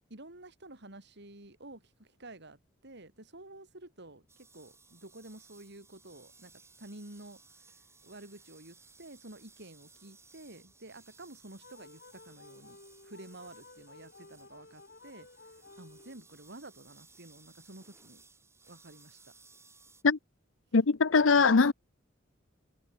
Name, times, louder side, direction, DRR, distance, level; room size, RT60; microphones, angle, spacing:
voice 1, 0.1-15.3 15.8-18.2 18.6-19.3, right 2 dB, 60° right, 4.7 m, -51 dB
sound 1, 4.3-20.0, right 4 dB, 15° right, 7.0 m, -60 dB
sound 2, 11.6-16.5, left 3 dB, 55° left, 7.9 m, -55 dB
voice 2, 20.7-21.7, left 4 dB, 75° left, 0.8 m, -22 dB
head